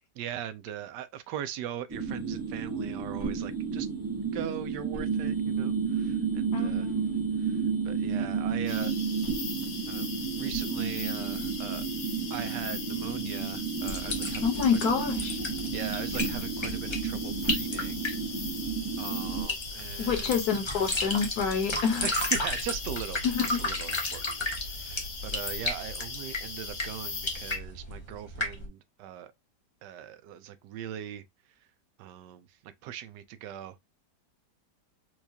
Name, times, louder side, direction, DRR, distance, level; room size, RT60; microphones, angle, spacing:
voice 1, 0.2-3.9 4.3-6.9 7.4-8.9 9.9-11.8 12.3-14.5 15.7-18.0 19.0-20.3 22.0-29.3 29.8-31.2 32.0-33.8, right 10 dB, 85° right, 1.2 m, -40 dB
sound 1, 1.9-19.5, right 5 dB, 20° right, 0.5 m, -32 dB
voice 2, 6.5-7.2 14.4-15.4 20.0-22.1 23.2-23.6, left 6 dB, 65° left, 1.4 m, -28 dB
sound 2, 8.7-27.6, left 4 dB, 85° left, 1.7 m, -39 dB
sound 3, 13.9-28.7, left 2 dB, 30° left, 0.5 m, -34 dB
4.5 x 2.4 x 2.7 m
omnidirectional pair, 1.8 m